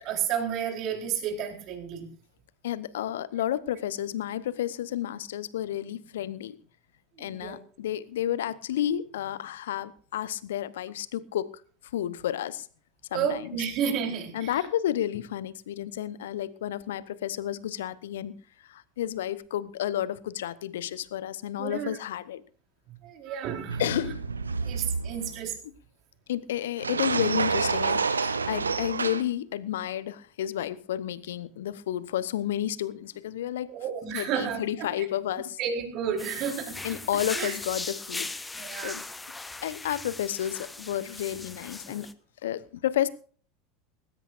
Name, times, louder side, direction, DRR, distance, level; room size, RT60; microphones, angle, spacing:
voice 1, 0.0-2.1 7.2-7.6 13.1-14.5 21.6-22.0 23.0-23.8 24.6-25.5 33.7-34.6 35.6-36.8 37.4-37.5 38.5-39.0, right 8 dB, 45° right, 2 dB, 4.3 m, -31 dB
voice 2, 2.6-6.6 7.2-11.6 11.9-12.7 13.1-13.6 14.3-18.3 18.7-22.4 23.8-24.2 25.6-25.7 26.3-33.7 34.1-35.6 36.8-38.3 38.8-39.0 39.6-42.1 42.4-43.1, left 11 dB, 65° left, 18 dB, 0.9 m, -31 dB
sound 1, 23.7-25.4 26.8-29.2, right 5 dB, 80° right, 0.7 m, -28 dB
sound 2, 36.2-42.1, left 3 dB, 10° left, 1.1 m, -38 dB
20.0 x 17.0 x 2.6 m, 0.42 s
figure-of-eight pair, 80°, 0 cm